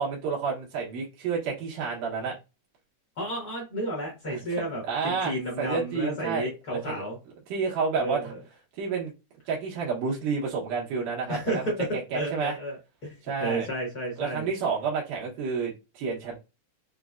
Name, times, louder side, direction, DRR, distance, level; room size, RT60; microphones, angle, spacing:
voice 1, 0.0-2.4 4.3-7.0 7.5-8.3 8.8-9.1 9.5-12.6 13.2-13.7 14.2-16.3, right 5 dB, 85° right, 2.6 m, -30 dB
voice 2, 3.2-7.2 7.9-8.4 11.3-13.1 13.4-14.5, right 1 dB, 70° left, 0.9 m, -32 dB
5.7 x 2.1 x 2.4 m
omnidirectional pair, 3.7 m